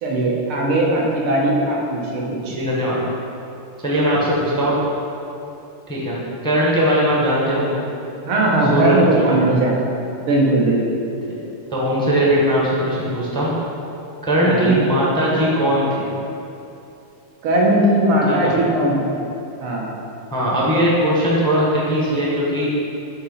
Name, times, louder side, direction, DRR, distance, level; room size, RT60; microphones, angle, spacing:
voice 1, 0.0-2.6 8.2-10.0 10.3-11.0 14.4-14.8 17.4-19.3 19.6-19.9, right 1 dB, 75° right, -3 dB, 2.0 m, -19 dB
voice 2, 2.5-3.0 3.8-4.8 5.9-6.2 6.4-7.8 8.7-9.0 9.3-9.5 11.7-13.5 14.2-16.1 18.3-18.5 20.3-22.8, equal, 5° left, -6 dB, 0.5 m, -19 dB
8.5 x 3.0 x 5.6 m, 2.8 s
omnidirectional pair, 2.4 m